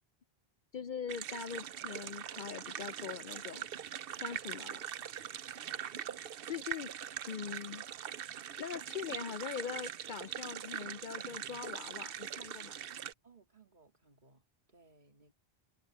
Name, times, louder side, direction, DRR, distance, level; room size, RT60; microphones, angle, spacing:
voice 1, 0.7-3.7 4.2-4.8 6.5-6.9 7.3-7.8 8.6-12.8, left 7 dB, 60° left, 0.6 m, -42 dB
sound 1, 1.1-13.1, right 9 dB, 65° right, 0.8 m, -42 dB
voice 2, 13.2-15.3, right 4 dB, 45° right, 2.8 m, -64 dB
omnidirectional pair, 1.0 m